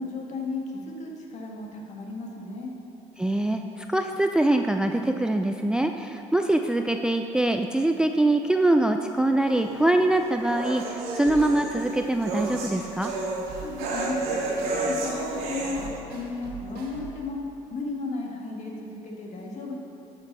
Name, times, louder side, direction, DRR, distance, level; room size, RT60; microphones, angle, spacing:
voice 1, 0.0-2.7 13.6-14.2 14.5-17.4 17.7-19.8, left 3 dB, 45° left, -1 dB, 1.8 m, -34 dB
voice 2, 3.2-13.1, right 1 dB, 5° right, 5 dB, 0.4 m, -23 dB
sound 1, 9.5-15.9, right 2 dB, 90° right, 2.3 m, -31 dB
sound 2, 11.3-11.7 12.3-12.7 13.5-13.9 14.6-15.0 15.7-17.3, right 5 dB, 70° right, 1.9 m, -42 dB
11.0 x 5.2 x 5.4 m, 3.0 s
supercardioid pair, 85°, 16 cm